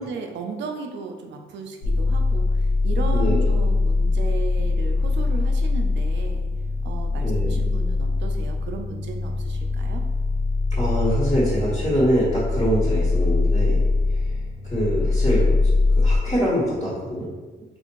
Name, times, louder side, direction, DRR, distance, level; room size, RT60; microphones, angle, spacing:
voice 1, 0.0-6.5 6.8-10.0, right 4 dB, 65° right, 4 dB, 0.5 m, -35 dB
sound 1, 1.8-16.2, left 3 dB, 85° left, 0.5 m, -22 dB
voice 2, 3.1-3.5 7.2-7.5 10.7-14.3 14.6-15.5 15.9-17.2, equal, 25° left, -11 dB, 1.3 m, -24 dB
3.4 x 2.4 x 3.0 m, 1.3 s
cardioid pair, 90°, 20 cm